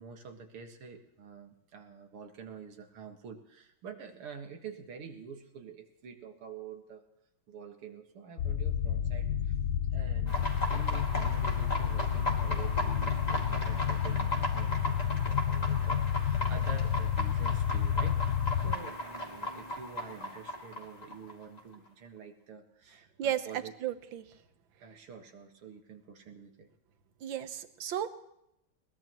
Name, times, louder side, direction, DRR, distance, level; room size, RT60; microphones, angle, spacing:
voice 1, 0.0-7.1 7.5-9.6 9.9-10.4 10.7-18.2 18.6-23.7 24.8-26.7, right 6 dB, 85° right, 4 dB, 2.6 m, -47 dB
sound 1, 8.4-18.7, left 9 dB, 70° left, 1.2 m, -30 dB
sound 2, 10.3-21.7, left 1 dB, 20° left, 2.1 m, -36 dB
voice 2, 23.8-24.2 27.2-28.1, right 10 dB, 65° right, 10 dB, 1.7 m, -33 dB
21.0 x 20.0 x 3.0 m, 0.82 s
omnidirectional pair, 2.3 m